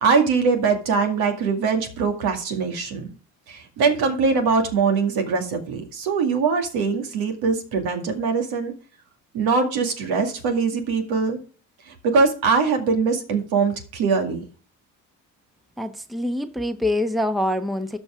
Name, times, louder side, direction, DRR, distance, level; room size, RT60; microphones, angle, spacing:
voice 1, 0.0-3.1 3.5-8.7 9.3-11.4 11.9-14.4, right 5 dB, 70° right, 2.3 m, -22 dB
voice 2, 15.8-18.0, left 1 dB, ahead, 1.0 m, -25 dB
13.5 x 5.5 x 3.6 m
supercardioid pair, 65°, 38 cm